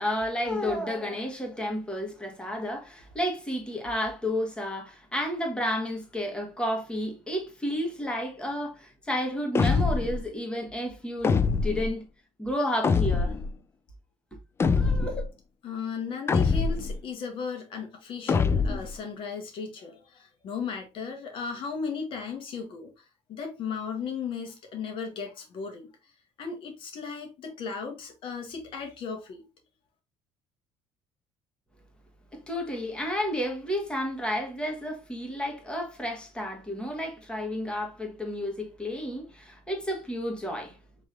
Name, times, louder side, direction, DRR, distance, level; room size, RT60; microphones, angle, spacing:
voice 1, 0.0-12.0 12.4-13.3 14.7-15.2 32.3-40.8, equal, 10° left, 1.4 m, -31 dB
sound 1, 9.5-10.2 11.2-11.9 12.8-13.5 14.6-15.2 16.3-17.0 18.3-18.9, left 5 dB, 25° left, 0.4 m, -24 dB
voice 2, 15.6-23.0 23.3-25.9 26.4-29.4, left 5 dB, 55° left, 1.2 m, -36 dB
6.0 x 3.2 x 2.5 m
cardioid pair, 115°, 10 cm